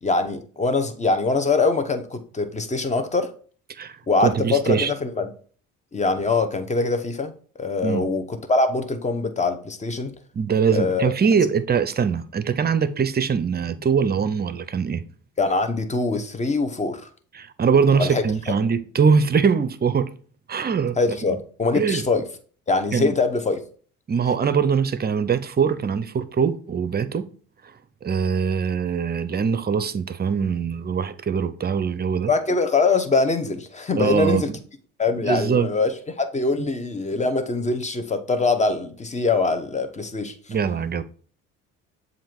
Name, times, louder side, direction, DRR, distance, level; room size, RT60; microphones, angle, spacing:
voice 1, 0.0-3.3 4.1-5.3 5.9-7.3 7.6-10.1 10.7-11.1 15.4-17.0 17.9-18.2 21.0-22.2 22.7-23.6 32.3-34.5 35.0-40.3, left 3 dB, 20° left, 1.0 m, -23 dB
voice 2, 3.8-4.9 7.8-8.1 10.3-15.0 17.3-20.1 20.5-21.0 21.3-21.4 21.7-22.0 22.9-23.2 24.1-27.3 28.0-32.3 34.0-34.5 35.2-35.7 40.5-41.0, right 6 dB, 30° right, 0.6 m, -22 dB
7.4 x 2.7 x 5.2 m
supercardioid pair, 75°, 33 cm